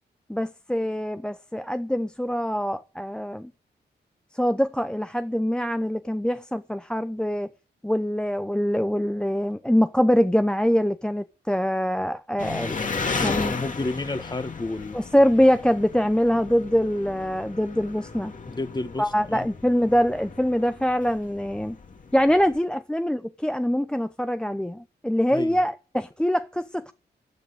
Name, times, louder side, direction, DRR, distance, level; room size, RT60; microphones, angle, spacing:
voice 1, 0.3-3.5 4.3-7.5 7.8-12.9 13.2-13.6 14.9-18.3 19.0-21.8 22.1-26.9, equal, 5° left, 0.7 m, -24 dB
Engine, 12.4-22.6, left 4 dB, 45° left, 2.3 m, -35 dB
voice 2, 13.0-15.0 18.5-19.5 25.3-25.6, left 2 dB, 25° left, 1.6 m, -31 dB
15.0 x 7.9 x 8.8 m
cardioid pair, 90°, 18 cm